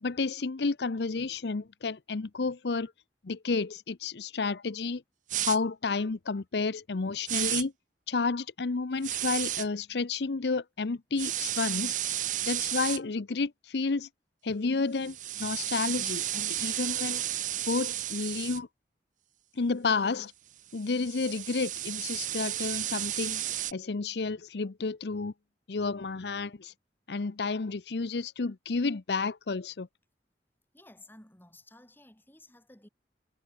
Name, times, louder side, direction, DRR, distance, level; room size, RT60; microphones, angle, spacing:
voice 1, 0.0-2.9 3.2-5.0 5.4-7.7 8.1-11.9 12.4-14.1 14.4-17.2 17.7-18.7 19.6-20.3 20.7-23.4 23.7-25.3 25.7-26.7 27.1-29.9, left 4 dB, 70° left, 0.7 m, -31 dB
sound 1, 5.3-5.6 7.3-7.6 9.0-9.7 11.2-13.0 15.0-18.6 20.7-23.7, right 13 dB, 45° right, 0.7 m, -32 dB
voice 2, 30.7-32.9, left 1 dB, 10° left, 4.3 m, -54 dB
head